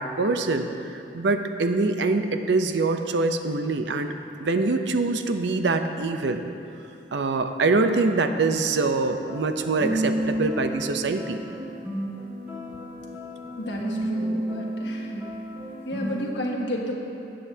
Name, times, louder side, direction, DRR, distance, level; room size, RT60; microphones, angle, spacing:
voice 1, 0.0-4.1 4.4-6.4 7.1-11.4, right 3 dB, 70° right, 7 dB, 0.6 m, -24 dB
sound 1, 9.3-16.3, right 1 dB, 10° right, 1.6 m, -31 dB
voice 2, 13.6-15.2 15.8-16.9, equal, 75° left, -2 dB, 1.5 m, -31 dB
18.0 x 7.7 x 2.8 m, 2.8 s
head